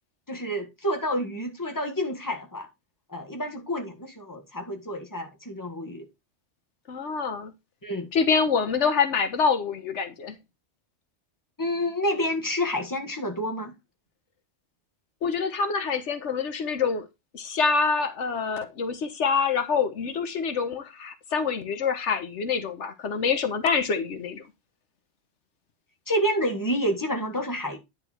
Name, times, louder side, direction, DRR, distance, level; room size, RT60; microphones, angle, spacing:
voice 1, 0.3-2.7 3.1-6.1 7.8-8.1 11.6-13.7 26.1-27.8, equal, 15° left, 1.6 m, -29 dB
voice 2, 6.9-7.5 8.1-10.4 15.2-17.1 17.3-24.4, left 5 dB, 90° left, 1.4 m, -26 dB
10.0 x 4.4 x 4.3 m
omnidirectional pair, 1.2 m